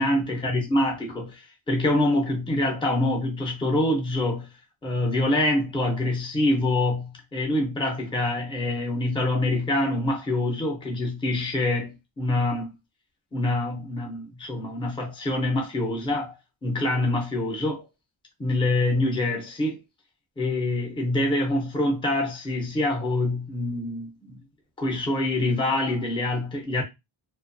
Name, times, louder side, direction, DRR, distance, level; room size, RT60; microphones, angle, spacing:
voice 1, 0.0-4.5 4.8-12.7 13.3-16.4 16.6-17.8 18.4-19.8 20.4-24.4 24.8-26.8, left 1 dB, 10° left, 0.5 m, -25 dB
2.8 x 2.2 x 2.5 m
wide cardioid pair, 170°, 48 cm